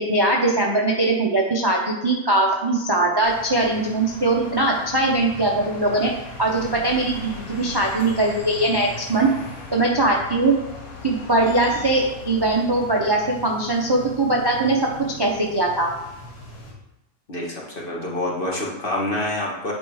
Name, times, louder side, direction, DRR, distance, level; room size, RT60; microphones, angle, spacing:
voice 1, 0.0-6.1 6.4-9.3 9.7-10.5 11.0-14.8 15.2-15.9, right 2 dB, 25° right, -1 dB, 0.5 m, -21 dB
sound 1, 3.2-16.7, left 1 dB, 80° left, 2.1 m, -39 dB
voice 2, 17.3-19.7, left 1 dB, 40° left, -3 dB, 1.5 m, -27 dB
8.8 x 3.1 x 4.8 m, 0.94 s
omnidirectional pair, 1.5 m